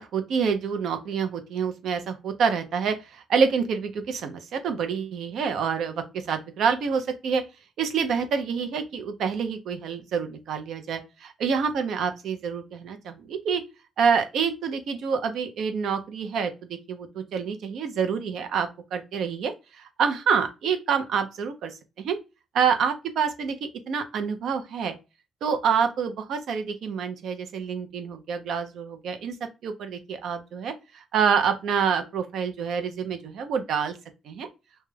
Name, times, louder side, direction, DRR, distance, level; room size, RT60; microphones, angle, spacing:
voice 1, 0.0-7.4 7.8-13.6 14.0-16.5 16.9-21.7 22.0-22.2 22.5-23.6 23.9-24.9 25.4-29.3 29.6-34.0 34.3-34.5, right 6 dB, 75° right, 0.4 m, -27 dB
2.3 x 2.0 x 3.1 m
cardioid pair, 90°, 0 cm